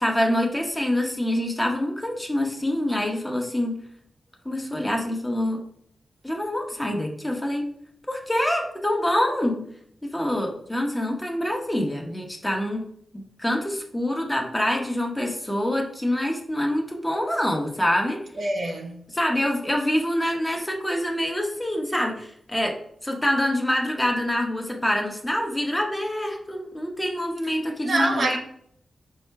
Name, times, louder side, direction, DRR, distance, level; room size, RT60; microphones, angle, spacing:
voice 1, 0.0-3.8 4.4-5.6 6.2-7.6 8.1-9.6 10.0-12.8 13.1-18.2 19.1-22.8 23.0-28.4, left 1 dB, 10° left, 0.8 m, -25 dB
voice 2, 18.4-19.0 27.8-28.4, right 2 dB, 60° right, 0.6 m, -25 dB
5.5 x 2.1 x 4.5 m
wide cardioid pair, 120°, 0 cm